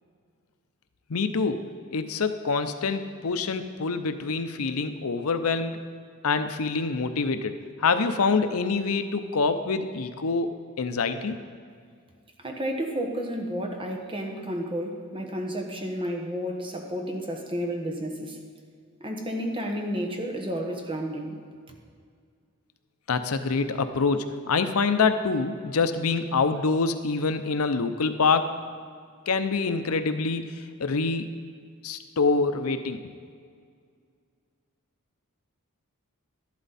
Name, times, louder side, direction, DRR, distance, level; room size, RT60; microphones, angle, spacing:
voice 1, 1.1-1.6 1.9-5.8 6.2-11.4 23.1-28.5 29.3-31.3 31.8-33.0, left 4 dB, 75° left, 9 dB, 0.7 m, -26 dB
voice 2, 12.4-18.4 19.0-21.4, equal, 25° right, 2 dB, 1.3 m, -31 dB
12.5 x 11.5 x 4.2 m, 2.1 s
head